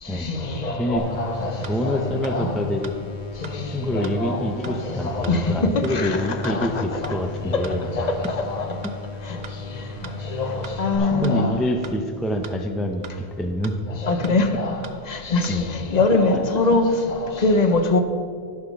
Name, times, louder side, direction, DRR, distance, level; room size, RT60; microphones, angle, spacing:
voice 1, 0.0-2.8 3.4-8.9 9.2-11.7 13.9-18.0, left 3 dB, 45° left, 0.8 m, -24 dB
sound 1, 1.0-11.0, left 2 dB, 80° left, 1.5 m, -36 dB
voice 2, 1.6-2.9 3.7-7.9 11.1-13.0 13.4-13.7 15.5-15.6 16.1-16.4, equal, ahead, 0.4 m, -26 dB
sound 2, 1.6-1.7 2.2-2.3 2.8-2.9 3.4-3.5 4.0-4.1 4.6-4.7 5.2-5.3 5.8-5.9 6.4-6.5 7.0-7.1 7.6-7.7 8.2-8.3 8.8-8.9 9.4-9.5 10.0-10.1 10.6-10.7 11.2-11.3 11.8-11.9 12.4-12.5 13.0-13.1 13.6-13.7 14.2-14.3 14.8-14.9 15.4-15.5, right 6 dB, 45° right, 0.6 m, -39 dB
11.5 x 6.0 x 6.0 m
omnidirectional pair, 1.1 m